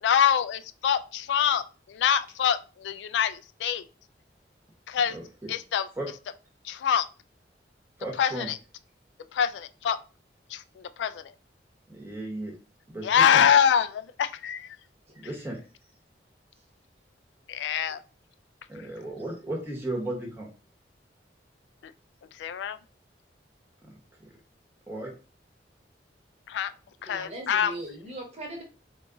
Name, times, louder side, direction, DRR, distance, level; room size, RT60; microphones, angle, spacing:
voice 1, 0.0-3.8 4.9-5.2 5.5-5.9 6.6-7.1 8.2-8.6 9.3-10.0 10.5-11.3 13.0-14.7 17.5-18.0 21.8-21.9 22.3-22.8 26.5-26.7 27.0-27.7, left 8 dB, 80° left, 13 dB, 0.3 m, -25 dB
voice 2, 5.1-5.5 6.0-6.1 8.0-8.5 11.9-12.5 12.9-13.4 15.1-15.6 18.7-20.5 23.8-24.3 24.9-25.1, right 1 dB, 10° right, -1 dB, 1.1 m, -35 dB
voice 3, 27.1-28.6, right 1 dB, 35° right, 1 dB, 1.1 m, -39 dB
3.7 x 2.4 x 3.8 m, 0.34 s
head